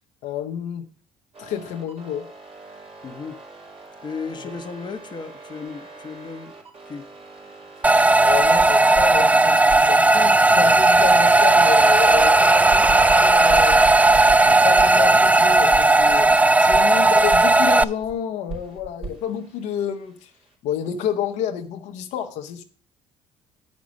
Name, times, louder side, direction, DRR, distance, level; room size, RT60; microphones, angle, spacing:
voice 1, 0.2-0.9 1.4-2.3 8.2-9.6 9.9-13.8 14.5-16.3 16.6-20.3 20.6-22.6, left 9 dB, 75° left, 0.9 m, -29 dB
sound 1, 1.3-9.2 9.7-12.3 12.7-16.3 16.7-18.1 18.5-20.5, right 3 dB, 55° right, 3.3 m, -39 dB
voice 2, 3.0-3.4 4.0-6.5 6.9-7.0, left 5 dB, 35° left, 1.0 m, -35 dB
sound 2, 7.8-17.8, right 2 dB, 10° right, 0.4 m, -15 dB
8.3 x 5.3 x 6.2 m
supercardioid pair, 70°, 12 cm